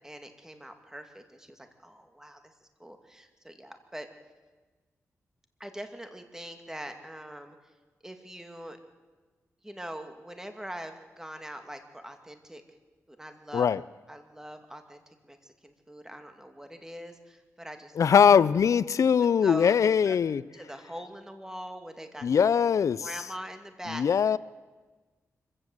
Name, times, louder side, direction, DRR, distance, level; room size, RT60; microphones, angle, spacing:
voice 1, 0.0-2.5 2.8-4.1 5.6-7.6 8.0-8.8 9.6-12.6 13.1-13.7 14.1-18.3 19.4-19.7 20.0-20.2 20.5-22.3 23.0-24.3, equal, 10° right, 6 dB, 2.3 m, -43 dB
voice 2, 18.0-20.4 22.2-23.1 23.9-24.4, left 7 dB, 70° left, 19 dB, 0.6 m, -22 dB
25.0 x 15.5 x 7.9 m, 1.3 s
cardioid pair, 80°, 6 cm